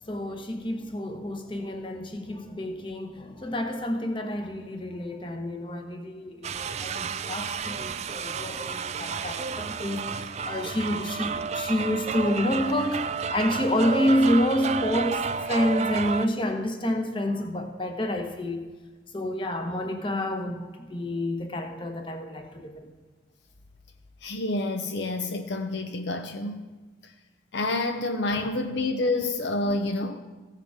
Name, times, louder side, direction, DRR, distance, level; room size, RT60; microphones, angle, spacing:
voice 1, 0.0-18.6 19.1-22.9 28.4-28.5 29.7-29.8, left 1 dB, 25° left, 1.0 m, -28 dB
sound 1, 6.4-16.3, right 5 dB, 35° right, 0.3 m, -31 dB
voice 2, 24.2-26.7 27.0-27.1 27.5-30.2, left 2 dB, 60° left, 0.6 m, -28 dB
15.5 x 6.7 x 4.9 m
head